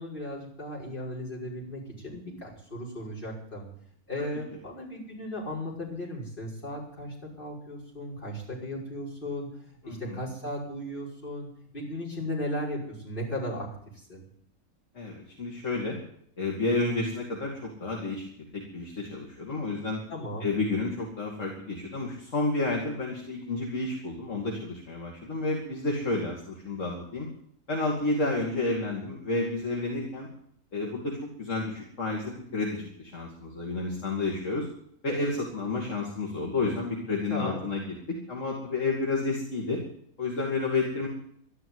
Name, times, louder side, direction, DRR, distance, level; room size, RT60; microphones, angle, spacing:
voice 1, 0.0-3.7 4.1-11.5 11.7-13.7 13.9-14.2 20.1-20.5 37.3-37.6, left 1 dB, 35° left, -5 dB, 5.8 m, -36 dB
voice 2, 9.8-10.2 14.9-16.0 16.4-18.3 18.5-20.0 20.4-27.3 27.7-30.3 30.7-34.7 35.0-39.8 40.2-41.1, left 2 dB, 60° left, -1 dB, 2.7 m, -30 dB
12.5 x 11.5 x 9.5 m, 0.66 s
omnidirectional pair, 1.5 m